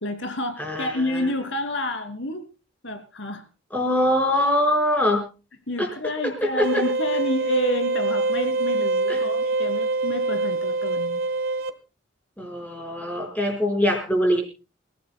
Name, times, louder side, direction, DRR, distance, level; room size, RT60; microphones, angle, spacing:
voice 1, 0.0-2.5 2.8-3.4 5.7-11.2, left 1 dB, 70° left, 7 dB, 2.6 m, -29 dB
voice 2, 3.7-5.2 5.8-5.9 6.2-6.8 9.1-9.2 12.4-14.4, left 1 dB, 10° left, 2 dB, 4.9 m, -23 dB
sound 1, 6.6-11.7, right 3 dB, 90° right, 1.4 m, -25 dB
28.5 x 15.5 x 2.2 m, 0.32 s
head